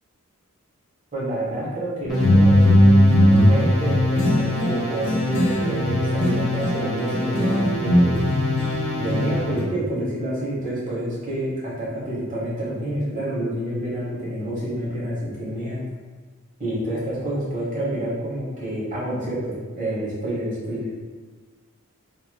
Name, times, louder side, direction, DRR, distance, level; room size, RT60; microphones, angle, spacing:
voice 1, 1.1-8.2 8.9-15.8 16.6-20.9, right 1 dB, 35° right, -8 dB, 1.1 m, -28 dB
sound 1, 2.0-6.8 7.1-9.6, equal, 85° left, 0.5 m, -19 dB
sound 2, 2.1-9.7, left 2 dB, ahead, 1.0 m, -27 dB
3.0 x 2.8 x 2.2 m, 1.5 s
head